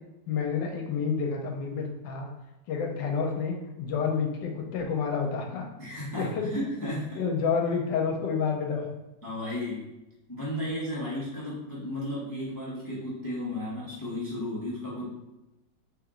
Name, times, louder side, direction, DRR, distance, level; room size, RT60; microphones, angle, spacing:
voice 1, 0.3-2.3 2.7-5.6 6.1-6.5 7.2-8.9, left 5 dB, 85° left, 2 dB, 1.2 m, -29 dB
voice 2, 5.8-7.2 9.2-9.8 10.3-15.1, left 1 dB, 30° left, -7 dB, 0.3 m, -34 dB
3.2 x 2.9 x 3.6 m, 0.98 s
omnidirectional pair, 1.9 m